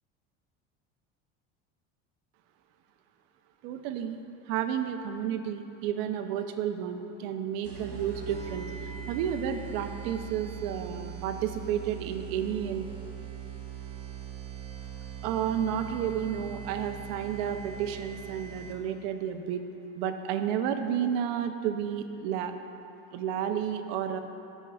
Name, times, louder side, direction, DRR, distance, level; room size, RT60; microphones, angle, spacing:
voice 1, 3.6-4.2 4.5-8.7 9.1-12.9 15.2-19.6 20.0-22.5 23.1-24.2, right 9 dB, 90° right, 7 dB, 0.6 m, -31 dB
sound 1, 7.6-19.0, right 9 dB, 60° right, 1.4 m, -41 dB
sound 2, 8.3-12.5, left 4 dB, 5° left, 0.7 m, -53 dB
14.0 x 5.4 x 2.3 m, 2.7 s
cardioid pair, 155°, 30 cm